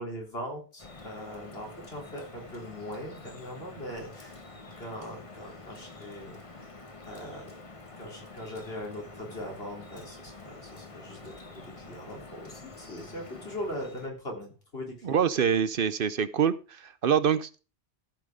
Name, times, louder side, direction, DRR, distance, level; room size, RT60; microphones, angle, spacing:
voice 1, 0.0-4.4 4.8-6.7 7.1-7.6 8.0-15.2, equal, 70° left, 0 dB, 3.9 m, -40 dB
Drip, 0.8-14.1, left 3 dB, 30° left, 1.3 m, -47 dB
voice 2, 15.0-17.6, right 7 dB, 60° right, 15 dB, 0.9 m, -25 dB
14.5 x 6.1 x 5.1 m, 0.33 s
omnidirectional pair, 1.1 m